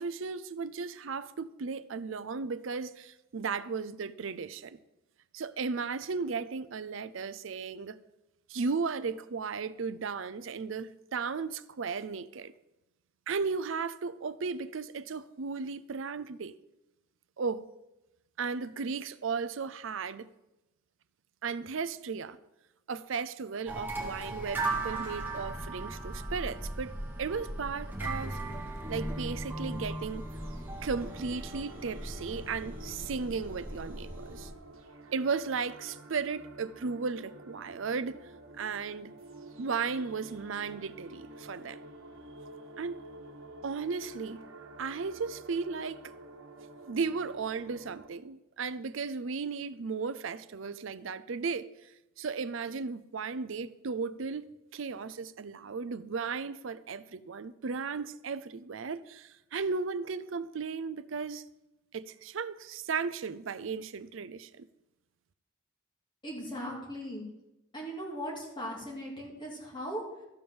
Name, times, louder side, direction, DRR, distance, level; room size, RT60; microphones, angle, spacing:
voice 1, 0.0-4.8 5.3-8.0 8.5-12.5 13.3-16.5 17.4-17.6 18.4-20.3 21.4-22.4 22.9-28.4 28.9-30.2 30.8-34.5 35.1-38.2 38.6-39.1 39.6-41.8 42.8-43.1 43.6-44.5 44.8-46.1 46.9-51.7 52.2-54.5 54.7-61.4 61.9-64.7, right 5 dB, 65° right, 0.5 m, -35 dB
sound 1, 23.7-34.5, right 2 dB, 10° right, 1.9 m, -37 dB
sound 2, 30.3-48.1, right 2 dB, 85° right, 1.2 m, -50 dB
voice 2, 66.2-67.2 67.7-70.2, equal, 25° left, 2.5 m, -38 dB
13.5 x 5.1 x 7.1 m
head